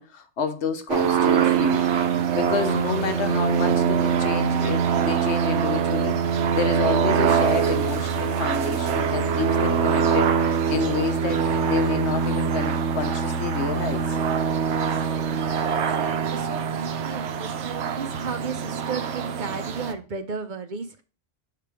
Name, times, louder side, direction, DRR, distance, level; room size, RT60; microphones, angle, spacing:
voice 1, 0.0-1.9 2.3-6.2 6.5-14.0, left 6 dB, 80° left, 1.2 m, -29 dB
sound 1, 0.9-19.9, right 7 dB, 85° right, 1.0 m, -23 dB
voice 2, 15.1-21.0, right 5 dB, 55° right, 0.6 m, -35 dB
6.7 x 5.0 x 3.4 m
omnidirectional pair, 1.1 m